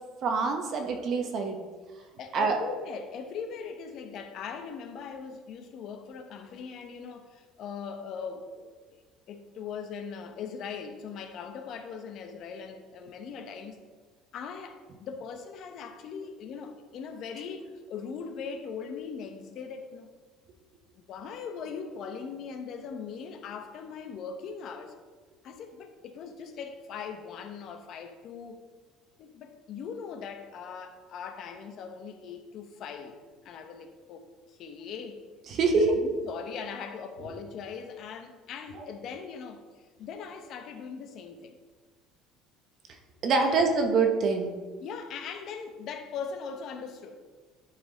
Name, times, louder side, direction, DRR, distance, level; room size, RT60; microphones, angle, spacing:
voice 1, 0.2-1.6 2.3-2.6 35.5-35.8 38.7-38.8 43.2-44.5, right 4 dB, 40° right, 0.8 m, -25 dB
voice 2, 2.2-8.7 9.3-13.8 14.3-20.1 21.0-25.0 25.4-28.6 29.2-33.2 33.4-35.2 35.7-39.6 40.0-41.6 43.4-43.8 44.8-47.2, left 6 dB, 45° left, 0.8 m, -40 dB
11.0 x 4.2 x 3.8 m
cardioid pair, 160°, 0 cm